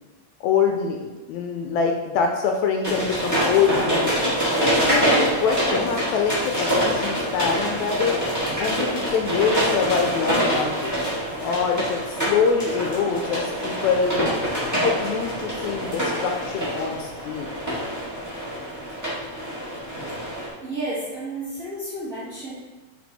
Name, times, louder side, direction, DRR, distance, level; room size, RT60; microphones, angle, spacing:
voice 1, 0.4-4.3 4.6-8.2 8.6-10.9 11.4-14.3 14.8-17.5, left 6 dB, 80° left, 3 dB, 1.7 m, -24 dB
sound 1, 2.8-20.5, equal, 5° right, 1.6 m, -25 dB
voice 2, 20.6-22.5, right 2 dB, 35° right, -10 dB, 1.4 m, -32 dB
6.1 x 4.6 x 4.2 m, 1.2 s
omnidirectional pair, 3.5 m